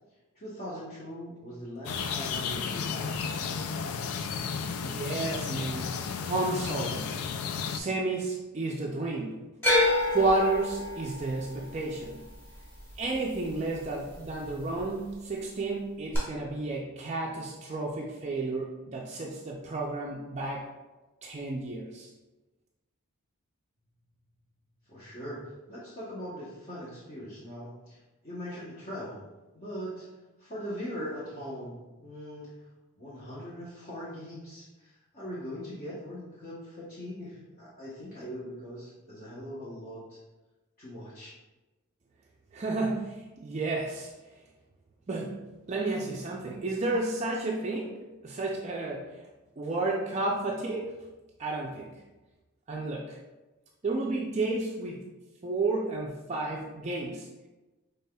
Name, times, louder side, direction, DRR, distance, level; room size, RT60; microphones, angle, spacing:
voice 1, 0.3-3.5 24.9-25.4 25.7-29.2 29.5-30.1 30.4-32.5 33.0-40.2 40.8-41.3, equal, 40° left, -9 dB, 0.9 m, -41 dB
sound 1, 1.8-7.8, left 6 dB, 85° left, 0.3 m, -33 dB
voice 2, 4.8-5.9 6.2-7.2 7.7-9.5 10.1-12.2 13.0-20.6 21.2-22.1 42.5-44.1 45.1-45.4 45.7-49.1 49.6-51.0 51.4-51.9 52.7-53.2 53.8-55.0 55.4-57.3, right 2 dB, 30° right, -2 dB, 0.4 m, -31 dB
sound 2, 9.6-13.8 14.1-14.8 16.1-16.2, left 2 dB, 10° left, 1.5 m, -28 dB
5.5 x 3.4 x 2.2 m, 1.1 s
head